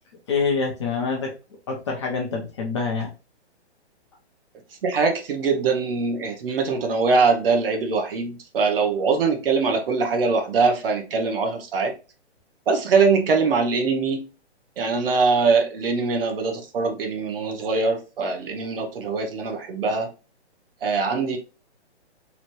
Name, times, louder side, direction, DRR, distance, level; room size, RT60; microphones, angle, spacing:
voice 1, 0.3-1.3 1.7-3.1, left 5 dB, 25° left, 0.5 m, -26 dB
voice 2, 4.8-11.9 12.7-14.3 14.8-20.1 20.8-21.4, right 4 dB, 55° right, 0.9 m, -22 dB
3.0 x 2.5 x 2.9 m
hypercardioid pair, 145°, 34 cm